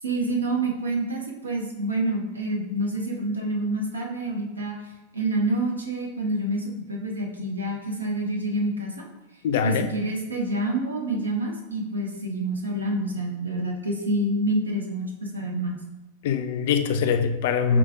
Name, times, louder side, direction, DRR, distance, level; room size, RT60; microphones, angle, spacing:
voice 1, 0.0-4.8 5.1-9.0 9.6-15.7, right 1 dB, 80° right, 0 dB, 0.7 m, -27 dB
voice 2, 9.4-9.9 16.2-17.8, left 6 dB, 55° left, 7 dB, 0.3 m, -23 dB
4.9 x 3.7 x 2.4 m, 1.1 s
figure-of-eight pair, 90°, 0 cm